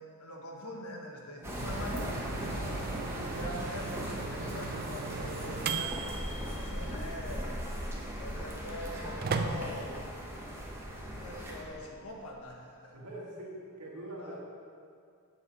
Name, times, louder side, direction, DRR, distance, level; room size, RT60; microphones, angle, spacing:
voice 1, 0.0-2.6 3.2-7.7 8.2-10.0 11.1-12.9 14.2-14.4, left 1 dB, 75° left, 0 dB, 1.3 m, -44 dB
sound 1, 1.4-11.6, equal, 10° right, 1.1 m, -39 dB
sound 2, 1.6-10.2, right 4 dB, 45° right, 0.4 m, -39 dB
sound 3, 5.8-12.4, equal, 40° left, 1.5 m, -42 dB
voice 2, 12.9-14.4, right 1 dB, 80° right, -4 dB, 2.0 m, -43 dB
8.0 x 7.2 x 4.7 m, 2.3 s
head